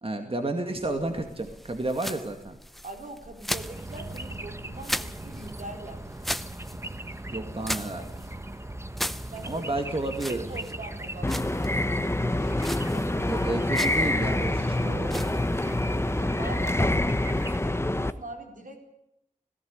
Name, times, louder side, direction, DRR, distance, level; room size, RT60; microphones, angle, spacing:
voice 1, 0.0-2.6 7.3-8.1 9.4-10.4 13.3-15.4, right 2 dB, 45° right, 5 dB, 2.2 m, -31 dB
sound 1, 0.8-18.1, equal, ahead, 0.8 m, -40 dB
voice 2, 2.8-6.0 9.3-9.7 10.3-11.7 12.9-13.4 16.2-18.8, right 2 dB, 80° right, 3 dB, 4.3 m, -42 dB
sound 2, 3.5-17.6, right 1 dB, 20° right, 1.2 m, -39 dB
sound 3, 11.2-18.1, left 1 dB, 20° left, 1.1 m, -26 dB
17.5 x 17.5 x 9.8 m, 0.80 s
wide cardioid pair, 60°, 13 cm